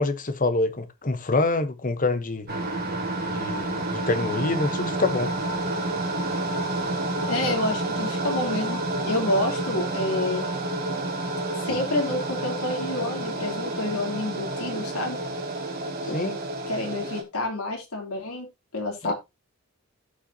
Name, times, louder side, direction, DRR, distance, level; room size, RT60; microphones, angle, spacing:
voice 1, 0.0-2.5 3.3-5.3 16.0-16.4 19.0-19.1, left 2 dB, 40° left, 1.0 m, -26 dB
sound 1, 2.5-17.2, right 2 dB, 45° right, 2.1 m, -29 dB
voice 2, 7.3-10.5 11.6-15.2 16.1-16.2 16.7-18.5 18.7-19.1, left 2 dB, 80° left, 3.2 m, -28 dB
15.5 x 5.7 x 2.8 m
head